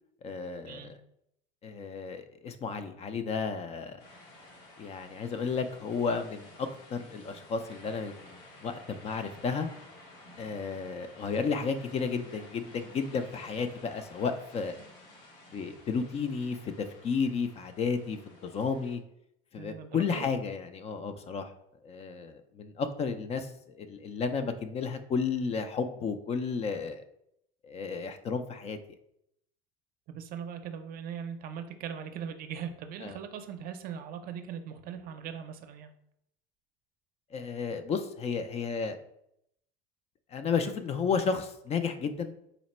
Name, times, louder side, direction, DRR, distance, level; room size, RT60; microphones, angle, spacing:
voice 1, 0.2-0.9 1.6-4.0 4.8-9.7 10.4-14.8 15.5-19.0 19.5-21.5 21.8-27.0 27.6-28.8 33.0-33.2 37.3-39.0 40.3-42.3, left 5 dB, 35° left, 9 dB, 0.3 m, -33 dB
sound 1, 4.0-19.0, left 2 dB, 85° left, 1.1 m, -53 dB
voice 2, 19.6-20.3 30.1-35.9, right 8 dB, 50° right, 8 dB, 0.5 m, -40 dB
4.0 x 2.1 x 4.1 m, 0.76 s
supercardioid pair, 115°, 20 cm